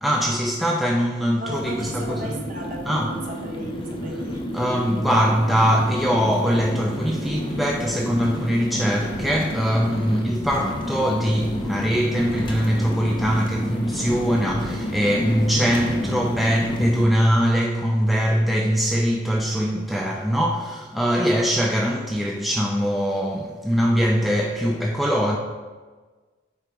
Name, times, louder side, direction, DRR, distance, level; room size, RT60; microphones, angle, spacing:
voice 1, 0.0-2.3 2.9-3.2 4.5-25.4, equal, ahead, 0.3 m, -22 dB
voice 2, 1.4-4.6, equal, 45° right, 1.0 m, -35 dB
sound 1, 1.5-17.0, equal, 25° left, 0.7 m, -30 dB
8.5 x 2.9 x 4.7 m
head